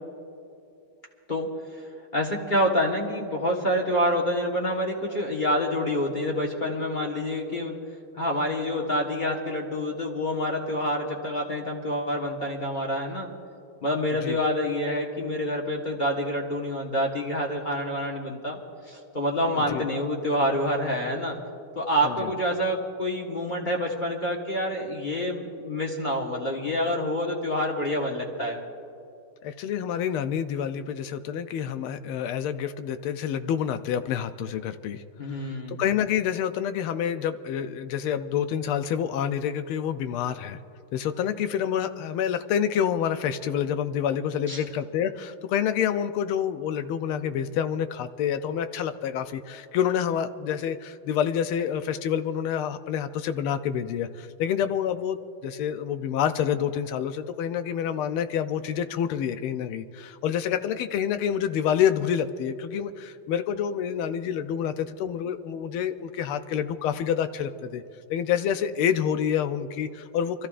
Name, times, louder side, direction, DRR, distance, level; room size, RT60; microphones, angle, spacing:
voice 1, 2.1-7.7 8.2-13.3 13.8-18.6 18.9-21.4 21.7-28.6 35.2-35.8 44.5-44.6, equal, 25° left, -1 dB, 1.2 m, -27 dB
voice 2, 29.4-40.6 40.9-67.8 68.1-70.5, left 9 dB, 85° left, 10 dB, 1.5 m, -28 dB
27.5 x 14.0 x 2.5 m, 2.7 s
omnidirectional pair, 2.3 m